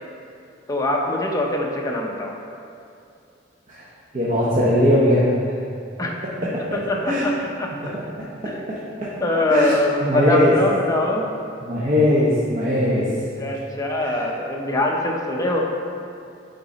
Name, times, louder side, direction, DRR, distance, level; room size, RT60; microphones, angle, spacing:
voice 1, 0.7-2.4 6.0-7.7 8.4-8.6 9.2-11.3 12.9-13.0 13.4-15.6, left 1 dB, 20° left, -1 dB, 0.8 m, -23 dB
voice 2, 4.1-5.6 7.1-7.3 9.5-9.7 10.0-10.5 11.6-13.1 14.0-14.1, left 1 dB, 45° right, -8 dB, 1.0 m, -19 dB
8.6 x 4.0 x 4.2 m, 2.5 s
head